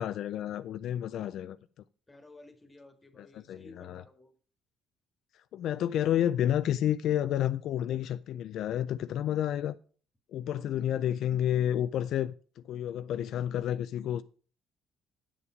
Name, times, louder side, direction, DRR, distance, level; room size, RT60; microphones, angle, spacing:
voice 1, 0.0-1.6 3.2-4.0 5.3-9.8 10.3-14.2, left 11 dB, 65° left, 0.3 m, -30 dB
voice 2, 2.1-4.3 10.5-11.1, left 2 dB, 10° left, 1.7 m, -55 dB
8.6 x 7.0 x 4.9 m
cardioid pair, 135°, 0 cm